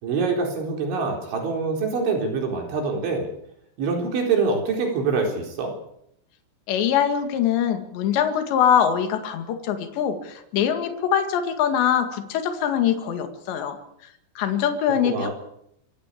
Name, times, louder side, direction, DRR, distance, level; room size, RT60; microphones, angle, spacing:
voice 1, 0.0-3.3 3.8-5.7 15.0-15.3, right 4 dB, 75° right, 2 dB, 6.4 m, -25 dB
voice 2, 6.7-13.8 14.4-15.3, left 9 dB, 70° left, 7 dB, 4.2 m, -23 dB
26.5 x 16.0 x 8.5 m, 0.76 s
omnidirectional pair, 5.4 m